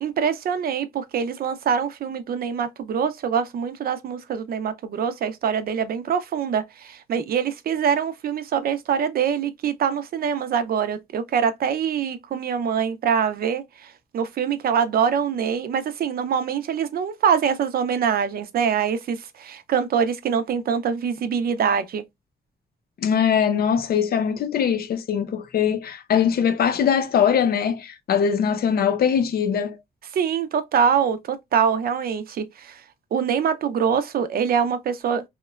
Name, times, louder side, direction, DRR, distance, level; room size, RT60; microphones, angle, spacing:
voice 1, 0.0-22.0 30.1-32.8 33.1-35.2, right 7 dB, 60° right, 0.4 m, -24 dB
voice 2, 23.0-29.8, left 8 dB, 65° left, 0.5 m, -21 dB
2.9 x 2.1 x 2.3 m
wide cardioid pair, 130°, 17 cm